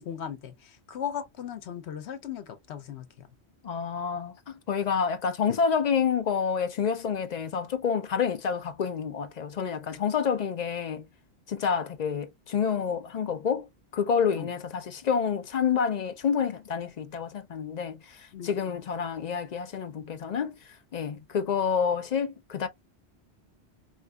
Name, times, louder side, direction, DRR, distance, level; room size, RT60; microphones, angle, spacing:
voice 1, 0.0-3.3 5.5-5.6 14.4-14.5 18.3-18.5, left 9 dB, 80° left, 1.0 m, -37 dB
voice 2, 3.6-4.3 4.7-11.1 11.5-20.6 20.9-22.7, left 6 dB, 55° left, 0.5 m, -28 dB
4.2 x 2.5 x 2.2 m
omnidirectional pair, 1.1 m